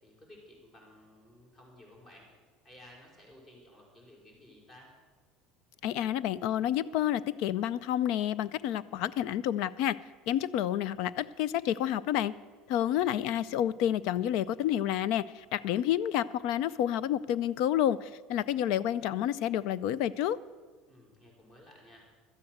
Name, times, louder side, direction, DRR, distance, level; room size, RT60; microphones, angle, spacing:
voice 1, 0.0-2.3 2.6-4.9 12.7-13.3 20.9-22.1, left 1 dB, 30° left, 0 dB, 5.0 m, -55 dB
voice 2, 5.8-10.0 10.3-12.3 12.7-20.4, left 11 dB, 70° left, 20 dB, 0.4 m, -29 dB
12.5 x 8.6 x 7.7 m, 1.4 s
supercardioid pair, 120°, 0 cm